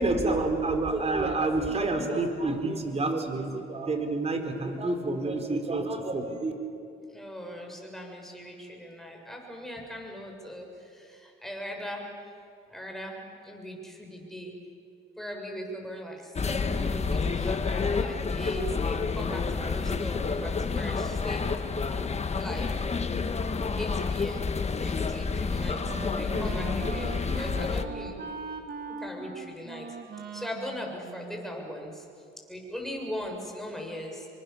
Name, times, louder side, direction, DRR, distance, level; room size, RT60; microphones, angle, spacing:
voice 1, 0.0-6.5, right 2 dB, 30° right, 6 dB, 4.1 m, -28 dB
voice 2, 7.1-12.1 12.7-14.6 15.2-22.1 22.4-22.7 23.7-24.5 24.8-25.8 26.1-28.2 29.0-29.9 30.3-32.0 32.5-34.3, equal, ahead, 1 dB, 6.7 m, -39 dB
sound 1, 16.4-27.8, left 4 dB, 35° left, 1.5 m, -29 dB
Wind instrument woodwind instrument, 25.3-32.0, right 4 dB, 55° right, 2.6 m, -41 dB
27.5 x 24.0 x 7.1 m, 2.5 s
cardioid pair, 90°, 20 cm